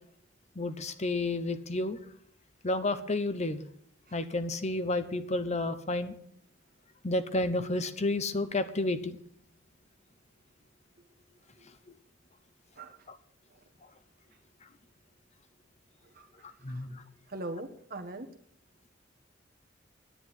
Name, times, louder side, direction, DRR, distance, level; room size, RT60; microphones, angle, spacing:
voice 1, 0.6-2.0 2.6-3.6 4.1-6.1 7.0-9.2 13.1-13.2 16.6-17.0, left 2 dB, 35° left, 11 dB, 0.9 m, -31 dB
voice 2, 17.3-18.3, right 2 dB, 50° right, 7 dB, 1.6 m, -40 dB
10.0 x 9.5 x 9.6 m, 0.65 s
head